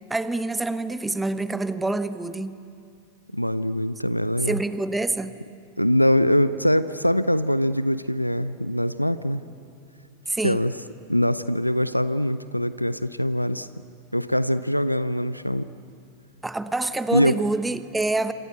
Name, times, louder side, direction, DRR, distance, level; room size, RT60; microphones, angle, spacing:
voice 1, 0.1-2.6 4.5-5.3 10.3-10.6 16.4-18.3, right 2 dB, 5° right, 13 dB, 1.1 m, -26 dB
voice 2, 3.3-4.6 5.8-9.4 10.4-10.7 11.1-13.7 14.1-15.7 17.1-17.4, equal, 90° left, 15 dB, 0.6 m, -23 dB
27.5 x 26.5 x 8.1 m, 2.4 s
figure-of-eight pair, 90°, 0 cm